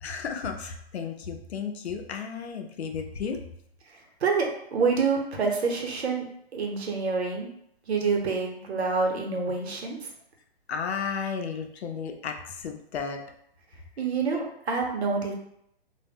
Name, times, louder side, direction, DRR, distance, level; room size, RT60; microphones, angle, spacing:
voice 1, 0.0-3.4 10.7-13.2, left 6 dB, 90° left, 5 dB, 0.6 m, -33 dB
voice 2, 3.9-6.2 6.5-7.5 7.9-10.1 14.0-15.3, right 4 dB, 90° right, 1 dB, 0.8 m, -27 dB
2.1 x 2.0 x 3.4 m, 0.74 s
hypercardioid pair, 165°, 31 cm